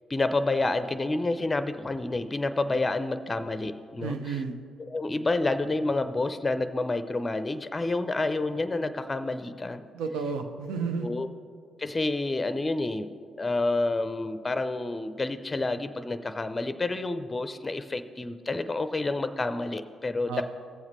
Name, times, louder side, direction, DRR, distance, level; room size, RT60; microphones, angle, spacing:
voice 1, 0.1-4.4 4.8-9.9 11.0-11.3 11.8-13.1 13.4-20.4, left 2 dB, 25° left, 11 dB, 0.5 m, -29 dB
voice 2, 4.0-4.6 9.9-11.1 20.3-20.4, right 5 dB, 70° right, 6 dB, 0.7 m, -31 dB
17.0 x 7.2 x 3.2 m, 2.2 s
figure-of-eight pair, 40°, 0 cm